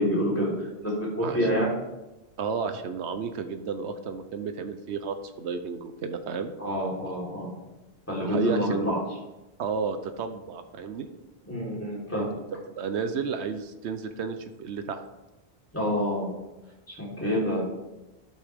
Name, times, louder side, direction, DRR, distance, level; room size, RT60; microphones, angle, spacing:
voice 1, 0.0-1.7 6.6-7.5 8.1-9.0 11.4-12.3 15.7-16.3 16.9-17.6, equal, 15° left, -5 dB, 3.9 m, -27 dB
voice 2, 2.4-6.5 8.2-8.9 9.6-11.1 12.8-15.0, right 5 dB, 90° right, 8 dB, 1.1 m, -32 dB
12.0 x 8.3 x 3.6 m, 1.0 s
omnidirectional pair, 1.1 m